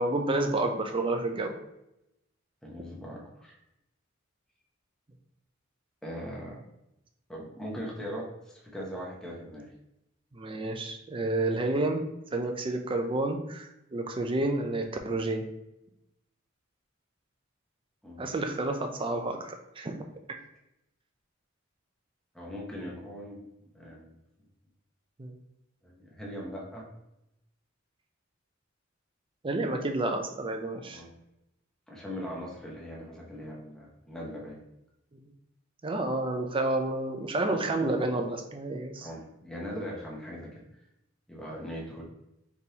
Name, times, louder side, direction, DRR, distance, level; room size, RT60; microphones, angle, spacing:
voice 1, 0.0-1.5 10.3-12.0 12.3-15.4 18.2-20.0 25.2-25.3 29.4-31.0 35.1-35.2 35.8-39.1, right 2 dB, 25° right, 4 dB, 0.5 m, -30 dB
voice 2, 2.6-3.5 6.0-6.6 7.3-9.7 18.0-18.3 22.3-23.4 23.7-24.1 25.8-26.9 30.9-31.1 31.9-34.6 39.0-40.5 41.3-42.0, equal, 5° left, -4 dB, 1.0 m, -40 dB
4.3 x 3.4 x 2.8 m, 0.86 s
head